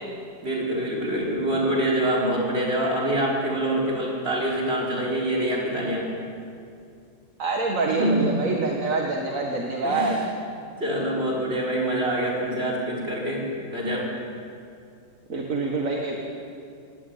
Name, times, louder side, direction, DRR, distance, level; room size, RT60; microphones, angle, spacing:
voice 1, 0.4-6.0 7.9-8.5 9.8-10.1 10.8-13.4 13.7-14.1, right 1 dB, 35° right, -3 dB, 5.6 m, -25 dB
voice 2, 7.4-10.2 15.3-16.2, right 3 dB, 50° right, 1 dB, 2.1 m, -26 dB
20.5 x 18.0 x 9.2 m, 2.4 s
omnidirectional pair, 1.8 m